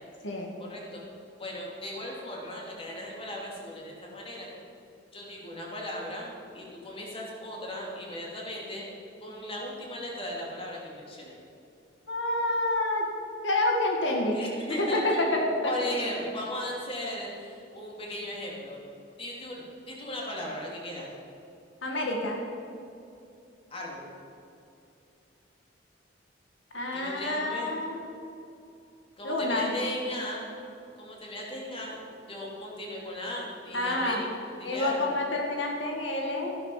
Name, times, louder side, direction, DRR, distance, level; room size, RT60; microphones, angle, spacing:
voice 1, 0.6-1.0 1.4-4.5 5.1-8.9 9.2-11.4 14.3-18.8 19.2-21.1 23.7-24.1 26.9-27.7 29.2-30.5 31.0-35.2, left 1 dB, 30° left, -2 dB, 2.9 m, -37 dB
voice 2, 12.1-13.0 13.4-14.4 14.8-15.7 21.8-22.4 26.7-28.0 29.2-29.7 33.7-34.2 34.6-36.5, left 2 dB, 80° left, 1 dB, 1.8 m, -28 dB
14.0 x 11.5 x 5.8 m, 2.6 s
head